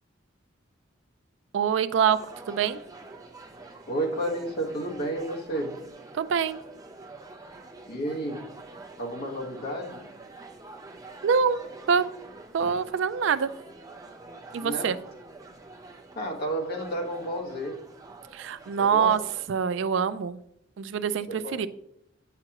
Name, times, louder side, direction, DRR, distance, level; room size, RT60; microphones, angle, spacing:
voice 1, 1.5-2.2 2.5-2.8 6.1-6.6 11.2-11.6 11.9-12.0 12.5-13.5 14.5-15.0 18.3-19.2 19.5-20.4 20.8-21.7, right 7 dB, 65° right, 14 dB, 0.4 m, -25 dB
sound 1, 2.0-19.5, right 3 dB, 20° right, 0.7 m, -46 dB
voice 2, 3.9-5.8 7.9-8.4 9.0-10.0 14.6-14.9 16.1-17.8 18.8-19.2 21.3-21.6, right 1 dB, 55° left, 0 dB, 1.4 m, -31 dB
8.8 x 5.8 x 2.9 m, 0.77 s
head